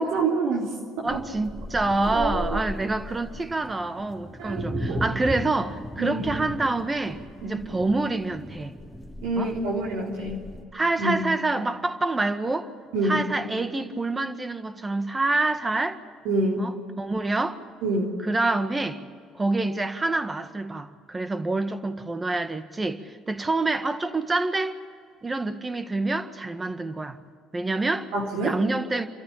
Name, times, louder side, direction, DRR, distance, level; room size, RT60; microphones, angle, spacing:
voice 1, 0.0-1.2 2.1-2.6 4.4-5.0 6.0-6.3 7.4-7.6 9.2-10.4 11.0-11.2 12.9-13.2 16.3-16.7 17.8-18.1 28.1-28.6, right 2 dB, 70° right, 3.5 m, -27 dB
voice 2, 1.0-8.7 9.4-9.5 10.7-12.7 13.0-16.0 16.6-17.6 18.2-19.0 19.3-24.8 25.2-27.2 27.5-28.1 28.4-29.1, right 2 dB, 20° right, 1.7 m, -27 dB
sound 1, 1.1-10.6, equal, 5° right, 3.2 m, -36 dB
28.0 x 14.0 x 8.7 m
hypercardioid pair, 55°, 0 cm